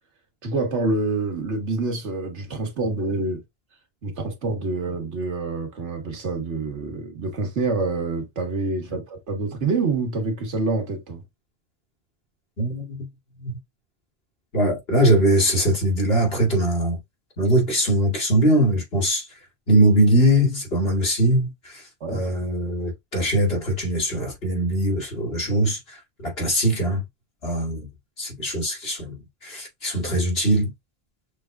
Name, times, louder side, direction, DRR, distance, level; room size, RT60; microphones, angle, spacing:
voice 1, 0.4-3.4 4.0-11.2 22.0-22.2, right 3 dB, 80° right, 1.6 m, -26 dB
voice 2, 12.6-13.0 13.4-13.6 14.5-17.0 17.4-19.3 19.7-21.8 22.1-27.0 27.4-27.9 28.2-30.7, right 1 dB, 60° left, 2.7 m, -21 dB
6.2 x 3.3 x 2.3 m
omnidirectional pair, 1.2 m